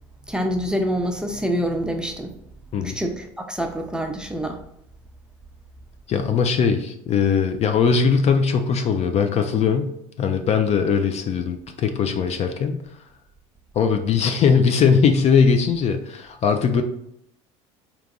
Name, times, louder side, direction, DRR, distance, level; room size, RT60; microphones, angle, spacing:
voice 1, 0.3-2.3 2.8-4.6, equal, 5° right, 3 dB, 0.6 m, -26 dB
voice 2, 6.1-9.9 10.2-12.8 13.7-16.8, left 6 dB, 40° left, 7 dB, 0.5 m, -20 dB
3.5 x 2.9 x 3.7 m, 0.75 s
supercardioid pair, 85°, 17 cm